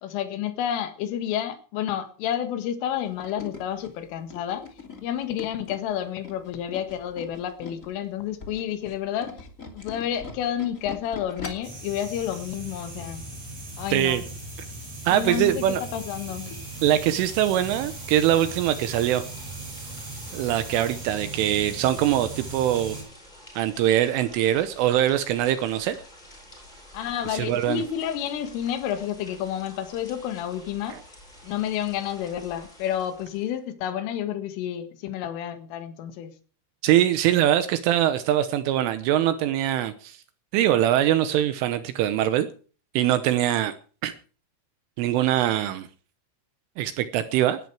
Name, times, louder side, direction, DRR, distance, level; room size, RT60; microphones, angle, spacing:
voice 1, 0.0-4.7 5.0-9.5 9.7-13.2 13.8-14.2 15.1-16.5 26.9-31.0 31.4-36.3, left 10 dB, 75° left, 4.2 m, -30 dB
Tools, 2.9-7.9 8.3-11.8 12.2-12.4 12.7-12.8, left 4 dB, 25° left, 1.8 m, -41 dB
sound 1, 11.6-23.0, right 2 dB, 35° right, 9.1 m, -38 dB
voice 2, 13.9-14.2 15.1-15.8 16.8-19.2 20.3-23.0 23.6-26.0 27.3-27.8 30.9-31.0 36.8-40.2 40.5-42.5 42.9-43.7 44.0-44.1 45.0-45.9 46.8-47.6, right 12 dB, 75° right, 3.3 m, -22 dB
sound 2, 16.0-33.6, left 1 dB, 10° left, 6.9 m, -49 dB
19.5 x 12.5 x 4.8 m
omnidirectional pair, 6.0 m